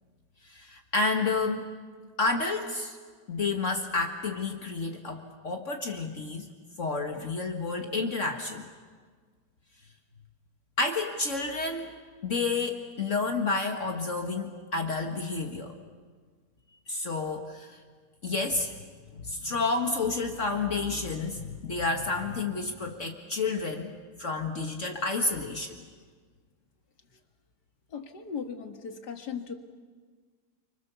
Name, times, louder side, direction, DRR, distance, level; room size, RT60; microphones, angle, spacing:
voice 1, 0.4-1.7 2.2-3.0 3.3-6.5 6.8-8.7 10.8-11.9 12.2-15.8 16.9-17.8 18.2-18.7 19.1-23.9 24.2-25.8, left 3 dB, 50° left, 3 dB, 1.9 m, -30 dB
voice 2, 27.9-29.5, left 6 dB, 85° left, 5 dB, 2.5 m, -37 dB
29.0 x 25.5 x 7.0 m, 1.6 s
omnidirectional pair, 1.7 m